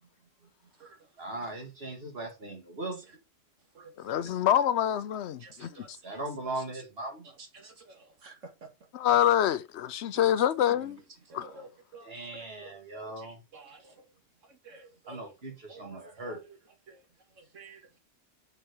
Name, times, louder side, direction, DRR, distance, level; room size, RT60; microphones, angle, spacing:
voice 1, 1.2-3.0 6.0-7.3 12.0-13.4 15.1-16.4, right 2 dB, 55° right, 2.4 m, -39 dB
voice 2, 4.0-6.0 8.9-11.0 11.3-11.5, left 10 dB, 70° left, 0.9 m, -26 dB
voice 3, 5.4-6.2 6.6-6.8 7.4-8.7 9.2-9.3 10.2-10.4 10.8-10.9 11.3-12.1 12.6-14.0 14.6-15.2 15.7-16.6 16.9-17.0 17.5-17.8, right 3 dB, 85° right, 2.0 m, -51 dB
5.6 x 4.4 x 4.8 m
omnidirectional pair, 1.3 m